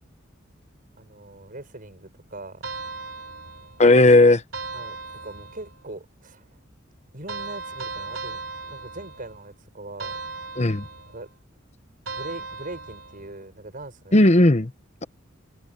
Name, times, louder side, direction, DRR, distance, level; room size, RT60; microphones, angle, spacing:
voice 1, 1.0-2.6 4.7-5.0 5.2-6.5 7.1-8.4 8.7-10.2 11.1-11.3 12.1-14.2, right 2 dB, 45° right, 5.9 m, -40 dB
sound 1, 2.6-3.9 4.5-5.8 7.3-9.5 10.0-11.3 12.1-13.4, right 4 dB, 75° right, 3.5 m, -37 dB
voice 2, 3.8-4.4 10.6-10.8 14.1-14.7, left 2 dB, 35° left, 1.0 m, -15 dB
head